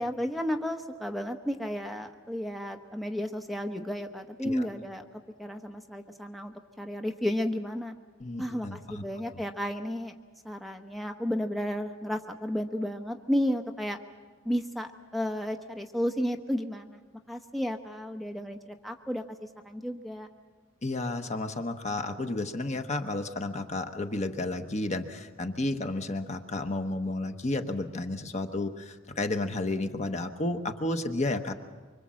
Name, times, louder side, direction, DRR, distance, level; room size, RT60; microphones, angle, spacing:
voice 1, 0.0-5.0 5.4-7.9 8.4-10.1 10.4-14.0 14.4-17.0 17.3-19.2 19.6-20.3, equal, ahead, 4 dB, 1.0 m, -32 dB
voice 2, 8.2-9.0 20.8-31.5, left 2 dB, 35° left, 7 dB, 1.1 m, -32 dB
25.0 x 24.5 x 7.6 m, 1.4 s
head